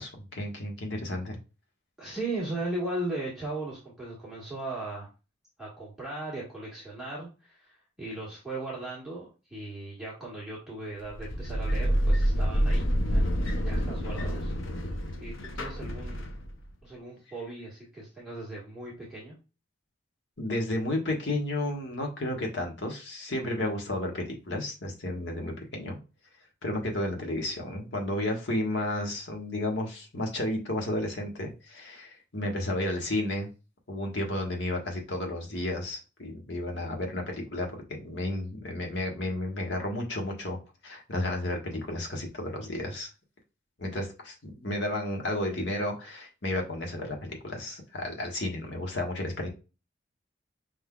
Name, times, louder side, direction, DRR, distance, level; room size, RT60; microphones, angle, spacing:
voice 1, 0.0-1.4 20.4-26.0 26.6-33.5 33.9-40.6 40.8-43.1 43.8-49.5, left 1 dB, 65° left, 1 dB, 1.3 m, -32 dB
voice 2, 2.0-5.1 5.6-14.5 15.2-16.3 16.8-19.4, right 2 dB, ahead, -7 dB, 1.7 m, -37 dB
sound 1, 11.0-16.7, equal, 90° left, 0.8 m, -28 dB
5.2 x 3.7 x 2.3 m, 0.31 s
head